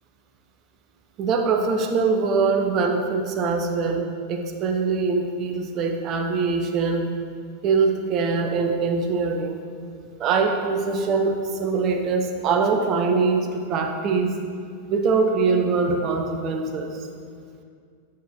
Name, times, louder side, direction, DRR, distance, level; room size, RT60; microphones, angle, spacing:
voice 1, 1.2-7.1 7.6-9.6 10.2-14.4 14.9-16.9, right 4 dB, 35° right, 4 dB, 0.7 m, -23 dB
9.0 x 4.6 x 4.7 m, 2.2 s
figure-of-eight pair, 90°, 0 cm